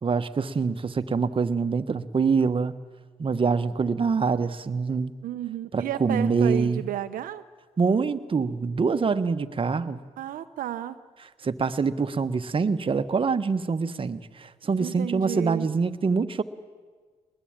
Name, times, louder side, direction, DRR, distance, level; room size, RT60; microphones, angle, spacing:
voice 1, 0.0-2.7 3.2-5.1 5.7-6.8 7.8-10.0 11.4-16.4, right 5 dB, 40° right, 10 dB, 1.3 m, -25 dB
voice 2, 5.2-7.4 10.2-11.0 14.8-15.7, right 12 dB, 80° right, 10 dB, 0.8 m, -32 dB
23.0 x 20.0 x 8.9 m, 1.5 s
cardioid pair, 70°, 14 cm